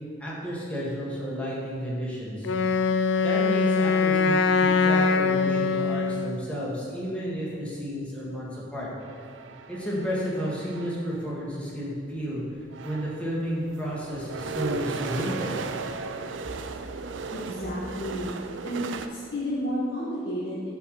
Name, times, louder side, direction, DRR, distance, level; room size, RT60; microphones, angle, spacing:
voice 1, 0.2-2.5 3.2-8.9 9.7-12.4 12.8-15.6, equal, 5° left, -7 dB, 1.6 m, -32 dB
Wind instrument woodwind instrument, 2.4-6.4, left 4 dB, 85° left, 0.4 m, -22 dB
sound 1, 9.0-11.2 12.2-12.3 12.6-19.1, right 4 dB, 85° right, 0.5 m, -36 dB
voice 2, 17.3-18.3 18.6-20.7, equal, 65° left, -8 dB, 1.5 m, -31 dB
7.7 x 4.9 x 6.5 m, 2.2 s
head